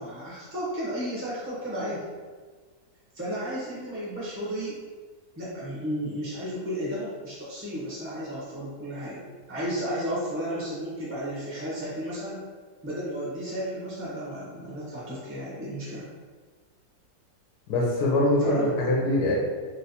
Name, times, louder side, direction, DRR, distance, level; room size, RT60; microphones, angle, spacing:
voice 1, 0.0-2.1 3.1-4.8 5.4-9.2 9.5-12.4 12.8-16.1 18.4-18.9, equal, 15° right, -9 dB, 0.4 m, -33 dB
voice 2, 17.7-19.3, left 1 dB, 70° left, -3 dB, 1.0 m, -23 dB
3.2 x 2.9 x 2.8 m, 1.5 s
omnidirectional pair, 2.0 m